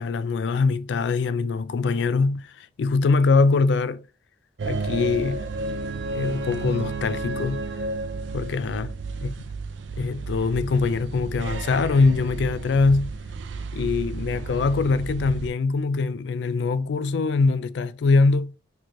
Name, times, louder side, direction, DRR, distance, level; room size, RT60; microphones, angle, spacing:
voice 1, 0.0-4.0 4.7-5.5 6.1-7.6 8.3-8.9 9.2-9.3 10.0-13.1 13.7-18.5, left 4 dB, 70° left, 0.3 m, -23 dB
sound 1, 4.6-15.5, right 3 dB, 85° right, 0.4 m, -32 dB
4.4 x 3.0 x 2.4 m
head